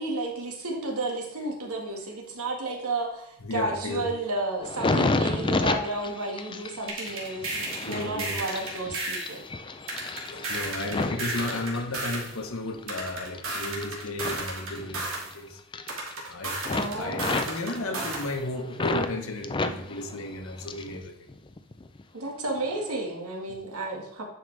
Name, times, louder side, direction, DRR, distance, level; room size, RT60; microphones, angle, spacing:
voice 1, 0.0-9.4 16.7-17.4 22.1-24.2, right 2 dB, 85° right, 1 dB, 1.7 m, -32 dB
voice 2, 3.4-4.1 7.9-8.4 10.3-15.6 16.2-21.3, left 2 dB, 65° left, 5 dB, 1.1 m, -34 dB
sound 1, 4.6-12.3 12.7-15.3 15.6-16.3 16.6-19.1 19.4-21.0 21.3-22.0 22.6-22.8, left 3 dB, 20° left, 0.4 m, -32 dB
sound 2, 6.9-9.3 9.9-12.3 12.9-15.3 15.9-18.3, right 2 dB, 65° right, 2.2 m, -33 dB
10.5 x 5.1 x 3.3 m, 0.76 s
head